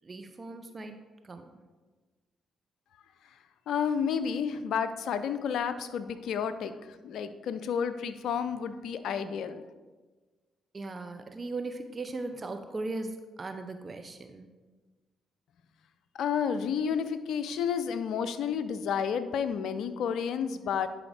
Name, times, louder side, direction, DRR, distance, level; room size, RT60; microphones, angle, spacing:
voice 1, 0.0-1.0 1.2-1.6 10.7-14.5, right 2 dB, 40° right, 7 dB, 0.6 m, -38 dB
voice 2, 3.7-9.6 16.1-20.9, left 7 dB, 70° left, 11 dB, 0.5 m, -31 dB
10.5 x 5.0 x 3.3 m, 1.3 s
hypercardioid pair, 45°, 0 cm